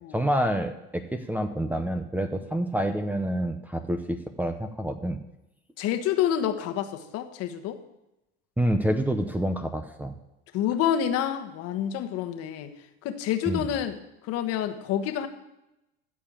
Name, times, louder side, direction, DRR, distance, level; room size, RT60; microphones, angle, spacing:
voice 1, 0.1-5.2 8.6-10.1 13.5-13.7, right 1 dB, 5° right, 7 dB, 0.9 m, -28 dB
voice 2, 5.8-7.8 10.5-12.7 13.0-14.0 14.2-15.3, left 10 dB, 55° left, 8 dB, 1.5 m, -28 dB
14.5 x 4.9 x 7.5 m, 0.91 s
hypercardioid pair, 95°, 29 cm